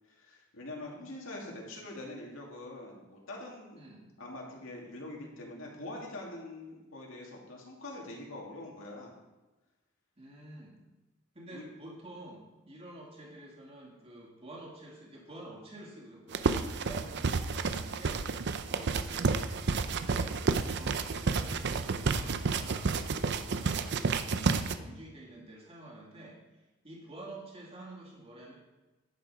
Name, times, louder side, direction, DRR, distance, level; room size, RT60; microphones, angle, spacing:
voice 1, 0.1-3.8 4.2-9.2 11.5-11.7, left 2 dB, 75° left, -2 dB, 2.5 m, -44 dB
voice 2, 3.8-4.1 10.2-10.8 11.3-18.2 18.7-22.9 23.3-26.4 26.8-28.6, right 1 dB, 30° right, -3 dB, 2.4 m, -49 dB
sound 1, 16.3-24.8, right 4 dB, 60° right, 0.6 m, -30 dB
11.0 x 7.3 x 5.0 m, 1.1 s
head